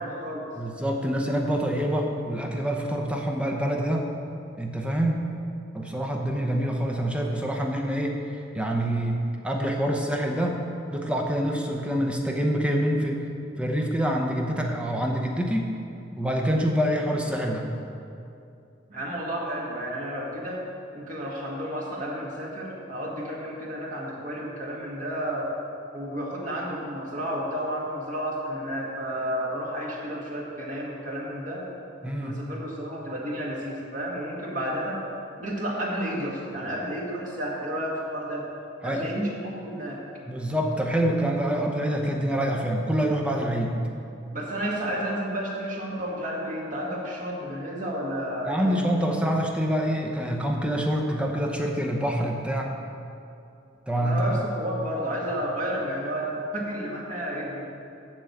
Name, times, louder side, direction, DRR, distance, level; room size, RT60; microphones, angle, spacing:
voice 1, 0.0-0.5 18.9-20.6 20.9-25.5 25.9-31.6 32.2-35.0 35.4-38.5 38.8-40.0 44.3-48.8 54.0-57.6, equal, 40° right, -3 dB, 1.7 m, -31 dB
voice 2, 0.6-4.1 4.6-5.3 5.7-8.2 8.5-9.2 9.4-10.7 10.9-13.2 13.6-15.7 16.2-17.6 32.0-32.4 38.8-39.1 40.3-43.7 48.4-52.7 53.9-54.2, equal, 5° right, 0 dB, 0.8 m, -26 dB
7.5 x 6.9 x 7.8 m, 2.6 s
head